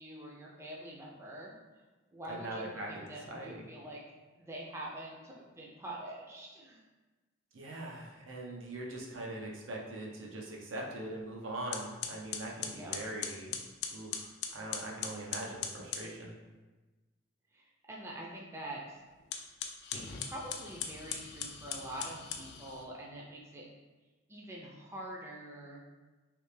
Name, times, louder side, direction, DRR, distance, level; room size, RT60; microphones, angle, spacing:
voice 1, 0.0-1.5 2.1-4.0 4.4-6.8 12.7-13.0 17.5-19.0 19.9-23.6 24.3-25.8, right 1 dB, 15° right, -3 dB, 0.4 m, -45 dB
voice 2, 2.3-3.7 7.5-13.5 13.9-14.3 14.5-16.3, right 1 dB, 90° right, -1 dB, 0.7 m, -42 dB
sound 1, 11.2-11.3 11.7-16.1 19.2-22.9, left 7 dB, 55° left, 0.3 m, -40 dB
3.3 x 2.8 x 3.2 m, 1.2 s
head